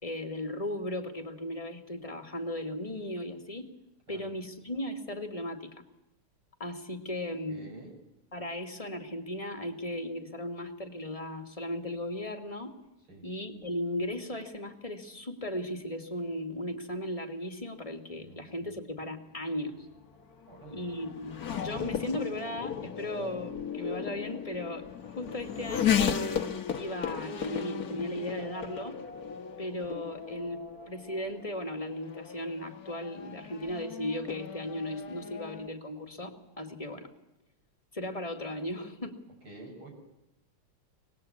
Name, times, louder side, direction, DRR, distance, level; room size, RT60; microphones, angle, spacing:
voice 1, 0.0-3.7 4.1-5.7 6.6-7.7 8.3-12.7 13.2-19.9 20.7-26.2 26.8-29.0 29.6-37.1 37.9-39.2, left 1 dB, 15° left, 4 dB, 2.0 m, -36 dB
voice 2, 7.5-8.0 13.1-13.3 18.2-18.8 20.5-20.9 39.4-39.9, right 2 dB, 70° right, 0 dB, 7.5 m, -49 dB
Race car auto racing / Accelerating revving vroom, 19.4-35.7, left 8 dB, 50° left, 1.7 m, -35 dB
25.5 x 20.0 x 8.5 m, 0.89 s
omnidirectional pair, 2.4 m